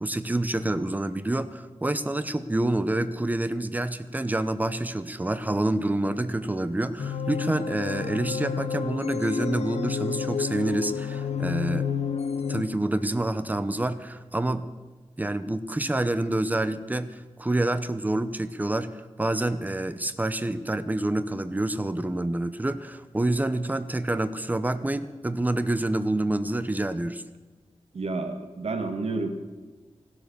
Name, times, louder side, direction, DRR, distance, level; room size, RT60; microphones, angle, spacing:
voice 1, 0.0-11.9 12.5-14.7 15.2-27.2, right 1 dB, 15° right, 12 dB, 0.8 m, -27 dB
sound 1, 7.0-12.6, left 6 dB, 80° left, 0.9 m, -30 dB
voice 2, 27.9-29.3, right 3 dB, 75° right, 6 dB, 1.7 m, -30 dB
16.0 x 12.5 x 6.8 m, 1.3 s
wide cardioid pair, 125°, 11 cm